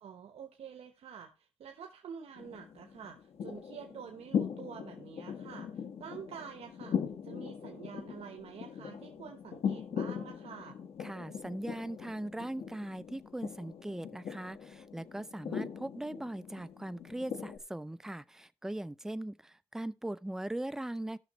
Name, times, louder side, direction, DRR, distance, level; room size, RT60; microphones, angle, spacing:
voice 1, 0.0-10.8, right 7 dB, 85° right, 1.0 m, -48 dB
sound 1, 2.4-17.6, left 7 dB, 80° left, 1.2 m, -40 dB
voice 2, 11.0-21.2, right 1 dB, 5° right, 0.4 m, -40 dB
17.0 x 6.2 x 3.0 m
cardioid pair, 90°, 10 cm